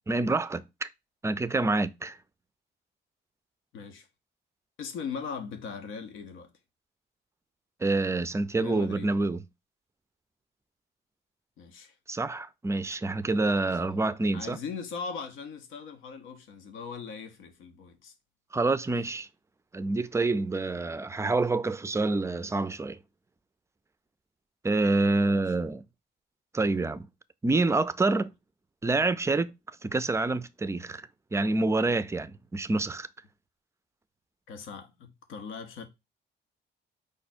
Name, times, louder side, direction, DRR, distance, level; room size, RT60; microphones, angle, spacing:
voice 1, 0.1-0.9 1.2-2.2 7.8-9.4 12.1-14.6 18.5-19.3 19.7-23.0 24.6-25.8 26.5-27.1 27.4-28.3 28.8-29.5 29.8-33.1, right 3 dB, 15° right, 0.4 m, -27 dB
voice 2, 3.7-4.1 4.8-6.5 8.6-9.1 11.6-11.9 13.8-13.9 14.3-18.1 25.0-25.5 34.5-35.9, left 5 dB, 85° left, 0.8 m, -39 dB
5.0 x 2.3 x 4.2 m
cardioid pair, 90°, 20 cm